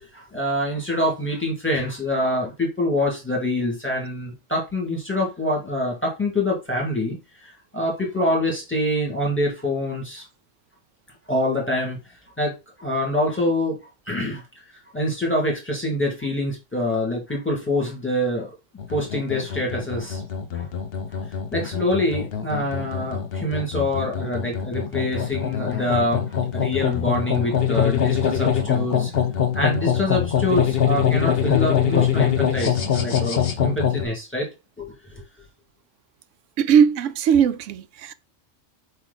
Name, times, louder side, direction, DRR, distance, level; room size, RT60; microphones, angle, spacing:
voice 1, 0.1-10.2 11.3-12.0 12.4-12.5 12.8-13.8 14.1-14.4 14.9-18.5 18.9-20.2 20.5-20.6 21.5-29.1 29.5-34.5 34.8-35.2, left 1 dB, 10° left, 2.3 m, -25 dB
sound 1, 18.8-34.0, left 8 dB, 50° left, 1.0 m, -24 dB
voice 2, 36.6-38.1, right 7 dB, 75° right, 0.9 m, -19 dB
4.9 x 4.8 x 4.1 m
omnidirectional pair, 1.3 m